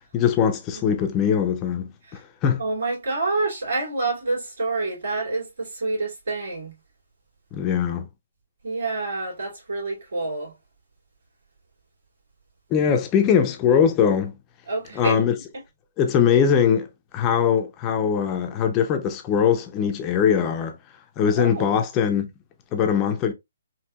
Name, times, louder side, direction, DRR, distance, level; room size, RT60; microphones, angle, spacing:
voice 1, 0.1-1.9 2.4-2.6 7.5-8.1 12.7-14.4 15.0-15.3 16.0-16.9 17.1-20.8 21.2-22.3 22.7-23.3, left 7 dB, 25° left, 0.6 m, -21 dB
voice 2, 0.7-1.0 2.0-2.2 2.6-6.7 8.6-10.5 14.7-15.2 15.5-15.6 21.3-21.8, right 3 dB, 75° right, 2.6 m, -28 dB
4.5 x 2.8 x 2.4 m
hypercardioid pair, 150°, 0 cm